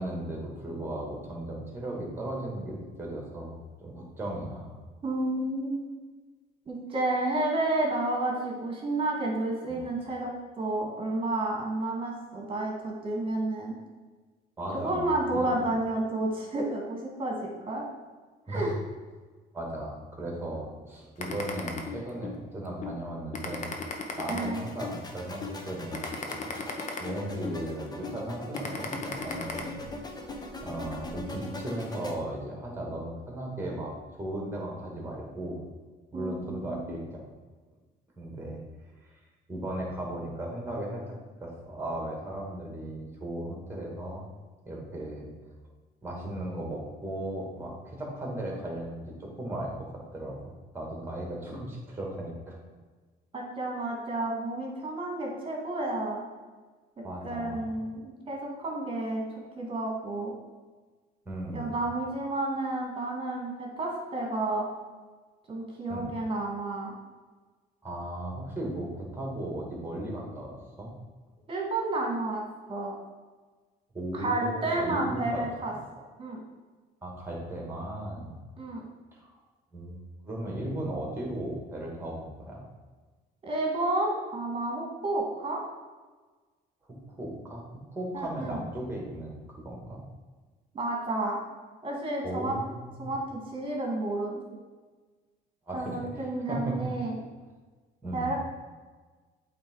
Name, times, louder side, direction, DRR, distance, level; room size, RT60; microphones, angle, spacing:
voice 1, 0.0-4.7 9.7-9.9 14.6-15.5 18.5-18.7 19.5-23.7 24.2-26.5 27.0-29.8 30.6-33.9 34.2-35.6 36.1-37.3 38.2-38.6 39.0-39.2 39.5-41.1 41.4-44.2 44.7-45.3 46.0-50.4 50.7-52.6 57.0-57.6 61.3-61.8 65.9-66.1 67.8-70.9 73.9-75.7 77.0-78.4 79.7-80.0 80.2-82.6 86.9-87.6 87.9-90.0 92.2-93.2 95.7-96.7 98.0-98.4, right 1 dB, 15° right, -1 dB, 2.4 m, -36 dB
voice 2, 5.0-5.9 6.7-10.3 10.6-13.8 14.7-17.9 18.5-18.7 24.3-24.6 36.1-36.9 53.3-56.2 57.2-59.2 59.6-60.3 61.5-64.7 65.5-66.9 71.5-72.4 72.7-73.0 74.1-75.7 76.2-76.4 78.6-78.8 83.4-85.6 88.1-88.6 90.7-91.4 91.8-92.6 93.0-94.4 95.7-97.1 98.1-98.4, right 2 dB, 30° right, -1 dB, 2.1 m, -31 dB
sound 1, 21.2-22.4 22.8-23.0 23.3-25.0 25.4-25.6 25.9-27.6 28.0-28.2 28.5-29.6, left 5 dB, 45° left, 1.1 m, -35 dB
sound 2, 24.1-32.1, left 2 dB, 25° left, 1.0 m, -41 dB
8.4 x 3.8 x 4.8 m, 1.4 s
cardioid pair, 110°, 17 cm